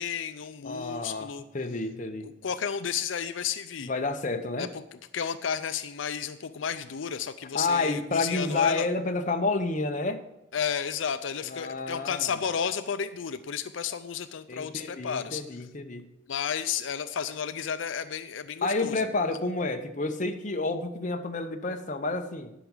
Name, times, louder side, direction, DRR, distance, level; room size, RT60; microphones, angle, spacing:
voice 1, 0.0-1.4 2.2-3.9 4.6-4.8 5.1-8.9 10.5-15.6 16.3-19.0, left 7 dB, 85° left, 11 dB, 0.5 m, -32 dB
voice 2, 0.6-2.3 3.8-4.7 7.5-10.3 11.5-12.3 14.5-16.0 18.6-22.5, left 3 dB, 40° left, 6 dB, 0.9 m, -30 dB
11.5 x 6.1 x 7.1 m, 0.87 s
head